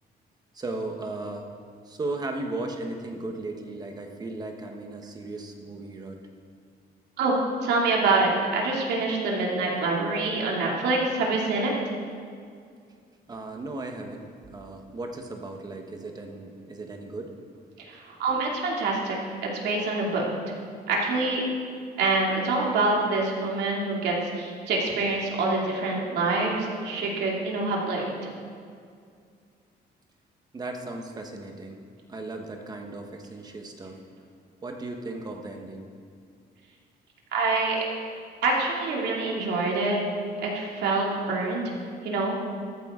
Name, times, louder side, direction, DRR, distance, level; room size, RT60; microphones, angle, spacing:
voice 1, 0.5-1.5 1.8-6.2 13.3-17.3 30.5-31.8 32.1-34.0 34.6-35.9, right 2 dB, 25° right, 3 dB, 1.2 m, -36 dB
voice 2, 7.2-11.7 17.8-19.2 19.4-20.2 20.9-21.5 22.0-28.3 37.3-37.8 38.4-40.0 40.4-41.7 42.0-42.4, right 3 dB, 80° right, -2 dB, 2.7 m, -26 dB
14.0 x 13.0 x 3.8 m, 2.2 s
cardioid pair, 170°, 17 cm